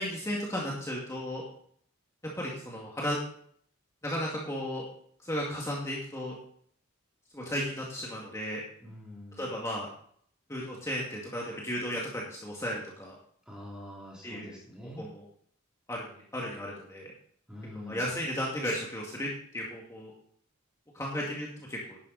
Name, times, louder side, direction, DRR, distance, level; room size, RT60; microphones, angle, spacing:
voice 1, 0.0-1.4 2.3-3.2 4.0-4.8 5.2-6.3 7.3-8.6 9.4-9.9 10.5-13.2 14.2-14.6 15.0-15.2 15.9-16.1 16.3-17.1 17.9-20.1 20.9-22.0, equal, 15° left, -3 dB, 2.0 m, -34 dB
voice 2, 8.8-9.5 13.5-15.1 17.5-18.1, left 1 dB, 5° right, -2 dB, 2.6 m, -45 dB
11.0 x 11.0 x 4.0 m, 0.62 s
head